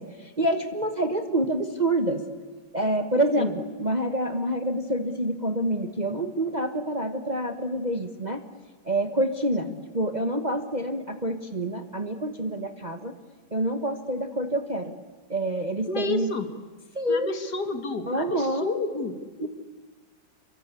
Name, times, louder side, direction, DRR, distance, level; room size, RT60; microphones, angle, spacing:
voice 1, 0.0-2.2 2.7-8.4 8.8-9.7 9.9-13.1 13.5-14.9 15.3-16.3 16.9-17.3 18.1-18.7 19.4-19.5, right 1 dB, 25° right, 7 dB, 1.3 m, -27 dB
voice 2, 15.9-16.5 17.1-19.5, left 3 dB, 55° left, 8 dB, 2.4 m, -31 dB
28.0 x 23.5 x 8.4 m, 1.4 s
omnidirectional pair, 2.1 m